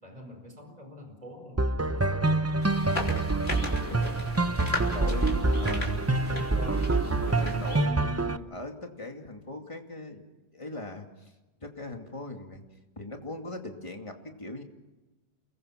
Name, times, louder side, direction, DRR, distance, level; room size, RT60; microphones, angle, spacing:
voice 1, 0.0-2.7 3.8-4.3 4.9-5.6, equal, 35° right, 5 dB, 5.0 m, -47 dB
sound 1, 1.6-8.4, right 2 dB, 15° right, 0.6 m, -26 dB
sound 2, 2.6-7.8, left 2 dB, 70° left, 3.8 m, -36 dB
voice 2, 4.9-6.1 6.9-10.2 10.5-11.3 11.6-12.6 13.0-14.6, left 2 dB, 30° left, 3 dB, 2.6 m, -40 dB
29.5 x 21.0 x 5.9 m, 1.1 s
omnidirectional pair, 1.1 m